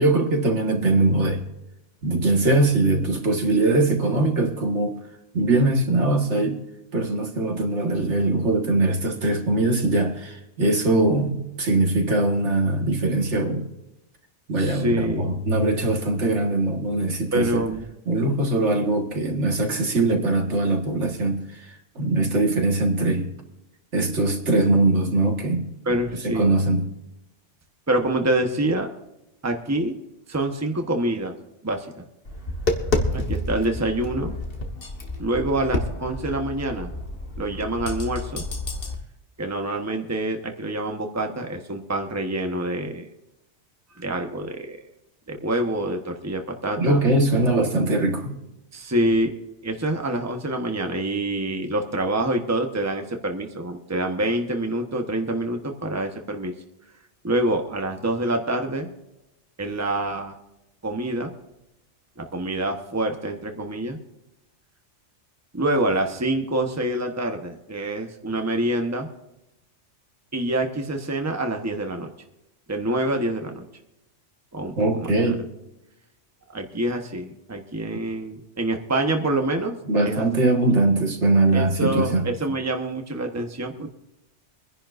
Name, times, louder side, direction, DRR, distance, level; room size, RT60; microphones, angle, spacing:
voice 1, 0.0-1.4 2.0-4.9 5.3-6.6 6.9-13.7 14.5-17.6 18.1-23.3 23.9-25.7 26.1-26.9 46.8-48.4 74.8-75.4 79.9-82.3, right 2 dB, 75° right, 3 dB, 2.1 m, -21 dB
voice 2, 14.6-15.3 17.3-17.9 25.8-26.5 27.9-28.9 29.4-30.0 30.3-31.3 31.6-32.1 33.1-34.4 35.2-36.9 37.4-38.4 39.4-43.1 43.9-44.8 45.3-47.0 48.7-49.3 49.6-56.5 57.2-58.9 59.6-60.4 60.8-61.3 62.2-64.0 65.5-69.1 70.3-72.1 72.7-73.6 74.5-75.1 76.5-79.8 80.0-80.2 81.5-83.9, right 1 dB, 15° right, 4 dB, 1.2 m, -26 dB
Tap, 32.3-38.9, left 2 dB, 50° left, 1.7 m, -29 dB
24.5 x 10.5 x 2.6 m, 0.92 s
omnidirectional pair, 1.2 m